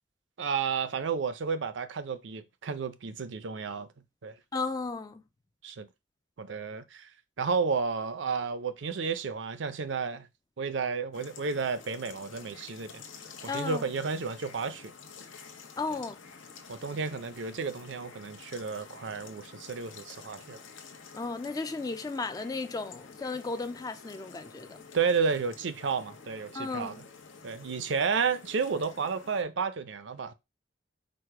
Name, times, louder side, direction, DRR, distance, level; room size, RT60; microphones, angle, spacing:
voice 1, 0.4-3.9 4.2-4.3 5.6-5.9 6.4-7.1 7.4-10.3 10.6-13.0 13.4-14.9 16.7-20.6 24.9-27.0 27.4-30.3, right 5 dB, 70° right, 0.5 m, -32 dB
voice 2, 4.5-5.2 13.5-13.8 15.8-16.2 21.1-24.8 26.5-27.0, left 3 dB, 20° left, 0.3 m, -34 dB
sound 1, 11.1-29.4, left 5 dB, 80° left, 0.9 m, -50 dB
4.7 x 2.1 x 4.6 m
head